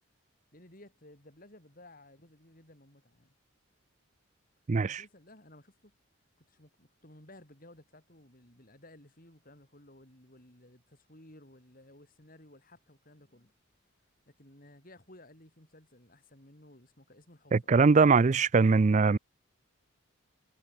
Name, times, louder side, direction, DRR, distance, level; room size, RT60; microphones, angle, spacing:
voice 1, 0.5-3.3 4.8-5.9 6.4-13.5 14.3-17.8, left 1 dB, 40° left, 5.0 m, -56 dB
voice 2, 4.7-5.0 17.5-19.2, right 4 dB, 35° right, 0.4 m, -22 dB
head